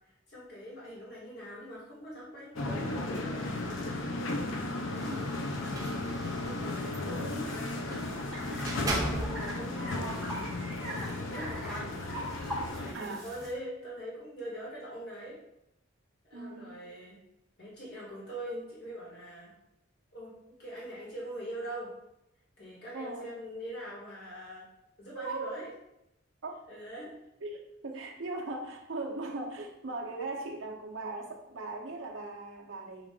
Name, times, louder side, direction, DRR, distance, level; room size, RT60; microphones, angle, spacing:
voice 1, 0.3-4.0 4.8-5.2 6.4-7.6 9.0-10.0 11.0-12.0 12.8-15.4 16.3-17.2 17.6-19.5 20.1-21.9 22.6-24.6 25.0-25.7 26.7-27.1 27.9-28.0, equal, 55° left, -6 dB, 1.4 m, -42 dB
sound 1, 2.6-12.9, left 2 dB, 75° left, 0.5 m, -35 dB
voice 2, 4.9-5.3 6.9-7.5 7.9-8.8 9.9-10.2 12.9-13.3 16.3-16.8 22.9-23.3 25.1-25.7 26.4-26.6 27.4-33.1, right 2 dB, 75° right, 1 dB, 0.7 m, -40 dB
sound 2, 5.0-8.1 8.6-9.6 10.0-11.4, right 2 dB, 20° right, 0.5 m, -39 dB
sound 3, 7.2-13.5, equal, ahead, 0.9 m, -42 dB
6.1 x 2.4 x 3.6 m, 0.85 s
head